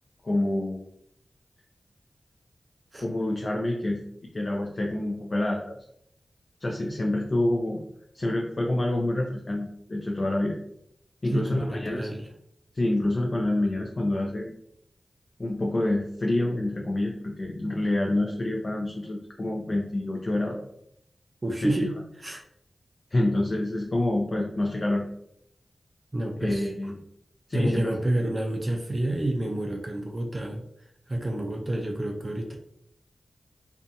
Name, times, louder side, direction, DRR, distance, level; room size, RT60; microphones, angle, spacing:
voice 1, 0.2-0.8 3.0-4.0 4.3-5.7 6.6-7.8 8.1-10.6 11.2-12.1 12.7-14.5 15.4-20.6 21.6-21.7 22.3-22.4 23.1-25.0 26.4-26.9 27.5-27.8, left 1 dB, 45° left, -1 dB, 0.4 m, -27 dB
voice 2, 11.2-12.3 21.4-22.4 26.1-26.7 27.5-32.6, right 1 dB, 35° right, 1 dB, 0.4 m, -29 dB
2.5 x 2.2 x 2.6 m, 0.71 s
wide cardioid pair, 65°, 0 cm